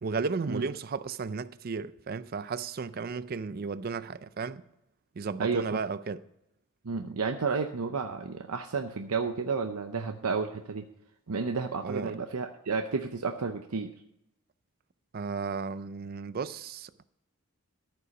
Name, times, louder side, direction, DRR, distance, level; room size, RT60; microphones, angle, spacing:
voice 1, 0.0-4.6 5.2-6.2 11.8-12.2 15.1-17.1, right 5 dB, 40° right, 0.4 m, -34 dB
voice 2, 5.4-5.8 6.8-10.8 11.3-13.9, right 4 dB, 80° right, 0.7 m, -31 dB
13.5 x 5.6 x 5.9 m
head